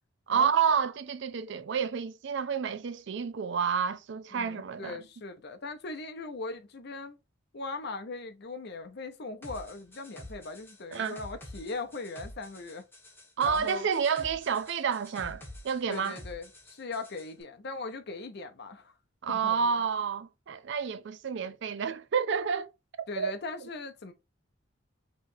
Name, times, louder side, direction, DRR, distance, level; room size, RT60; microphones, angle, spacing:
voice 1, 0.3-5.0 10.9-11.2 13.4-16.2 19.2-22.7 23.2-23.3, right 6 dB, 65° right, 0.4 m, -29 dB
voice 2, 4.3-7.2 7.5-12.8 13.4-13.9 15.9-18.9 19.3-19.8 23.1-24.1, left 3 dB, 55° left, 0.7 m, -39 dB
sound 1, 9.4-17.3, left 1 dB, 10° left, 1.3 m, -48 dB
5.6 x 3.1 x 2.7 m
head